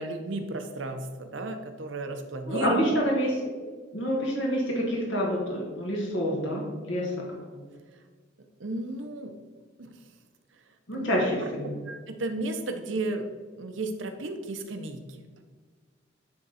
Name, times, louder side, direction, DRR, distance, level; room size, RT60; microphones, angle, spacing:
voice 1, 0.0-2.9 8.6-9.3 9.8-10.0 10.9-11.1 11.4-13.3 13.6-15.2, right 2 dB, 75° right, 6 dB, 0.8 m, -33 dB
voice 2, 2.4-3.5 3.9-7.1 7.5-7.6 10.9-11.7, equal, 75° left, -2 dB, 1.6 m, -27 dB
9.5 x 3.7 x 4.2 m, 1.5 s
head